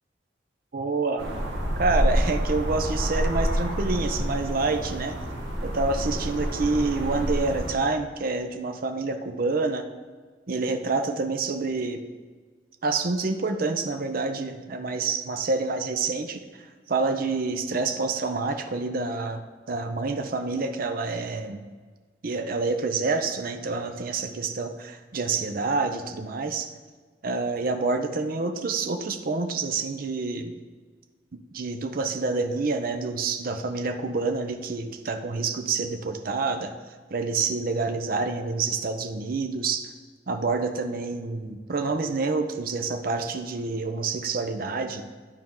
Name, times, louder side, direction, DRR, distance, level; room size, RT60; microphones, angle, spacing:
voice 1, 0.7-1.3 1.8-5.1 5.6-9.9 10.5-12.0 12.8-16.4 16.9-21.6 22.2-26.7 27.2-30.5 31.5-36.7 37.1-39.9 40.3-45.0, right 3 dB, 55° right, 5 dB, 0.6 m, -27 dB
sound 1, 1.2-7.7, equal, 75° right, 1.6 m, -28 dB
11.5 x 4.5 x 3.7 m, 1.4 s
head